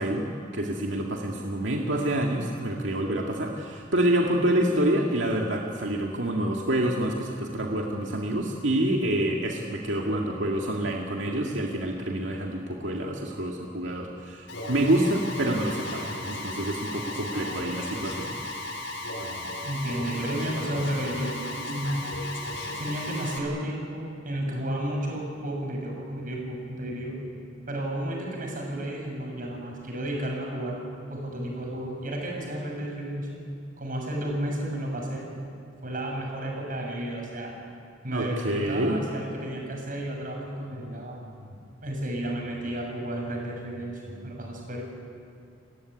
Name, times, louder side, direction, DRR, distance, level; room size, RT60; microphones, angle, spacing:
voice 1, 0.0-18.3 38.1-39.0, right 1 dB, 90° right, 0 dB, 2.1 m, -27 dB
Alarm, 14.5-23.4, left 1 dB, 75° left, 4.3 m, -35 dB
voice 2, 19.6-21.4 21.7-22.0 22.8-27.2 27.7-30.8 31.1-33.4 33.8-35.3 35.8-37.5 38.0-41.6 41.8-44.8, right 1 dB, 50° right, 0 dB, 7.4 m, -32 dB
29.5 x 16.0 x 9.7 m, 2.3 s
head